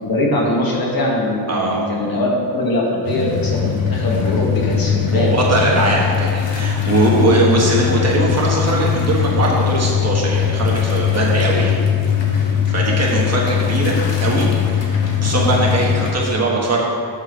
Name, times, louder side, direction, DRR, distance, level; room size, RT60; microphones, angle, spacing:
voice 1, 0.0-5.3, left 1 dB, 55° left, -3 dB, 1.6 m, -21 dB
sound 1, 3.0-16.1, left 8 dB, 85° left, 1.2 m, -20 dB
voice 2, 5.1-11.8 12.3-16.9, right 2 dB, 35° right, -3 dB, 1.4 m, -20 dB
7.3 x 5.5 x 5.4 m, 2.3 s
wide cardioid pair, 145°, 43 cm